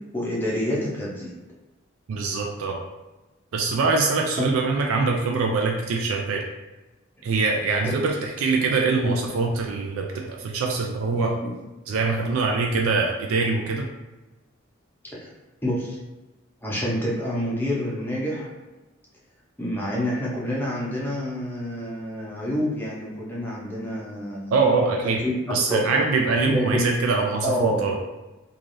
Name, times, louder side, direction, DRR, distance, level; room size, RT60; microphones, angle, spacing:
voice 1, 0.1-1.3 4.4-4.5 7.2-7.3 7.8-8.0 9.0-9.2 11.1-11.6 15.1-15.3 15.6-16.0 16.6-18.5 19.6-24.6 25.0-25.8 26.5-26.9 27.4-27.8, equal, 10° left, -5 dB, 0.6 m, -28 dB
voice 2, 2.1-2.8 3.5-6.4 7.2-11.3 11.9-13.9 24.5-25.2 25.5-28.0, right 4 dB, 80° right, 0 dB, 0.4 m, -23 dB
3.2 x 2.4 x 2.6 m, 1.1 s
head